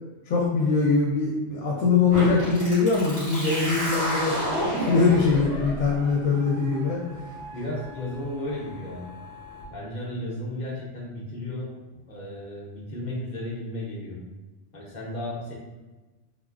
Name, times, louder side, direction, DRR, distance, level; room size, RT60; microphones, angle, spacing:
voice 1, 0.3-4.3 4.8-7.0, left 4 dB, 80° left, -3 dB, 0.9 m, -22 dB
sound 1, 2.1-9.6, equal, 90° right, 2.0 m, -32 dB
voice 2, 7.5-9.1 9.7-11.7 11.9-14.2 14.7-15.5, left 1 dB, 45° left, -5 dB, 0.7 m, -34 dB
3.7 x 2.0 x 2.4 m, 1.2 s
omnidirectional pair, 1.3 m